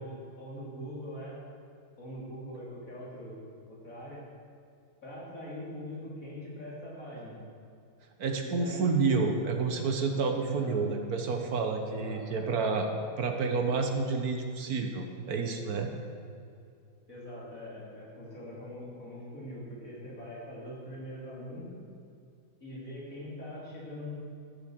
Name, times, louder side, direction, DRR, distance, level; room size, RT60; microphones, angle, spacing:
voice 1, 0.0-1.4 2.0-3.4 3.7-4.2 5.0-7.4 8.4-8.9 10.4-10.8 11.9-12.7 17.1-21.8 22.6-24.1, equal, 55° left, -6 dB, 3.9 m, -42 dB
voice 2, 8.2-12.9 13.2-15.9, right 4 dB, 65° right, 4 dB, 1.5 m, -29 dB
13.5 x 9.4 x 6.4 m, 2.4 s
omnidirectional pair, 1.7 m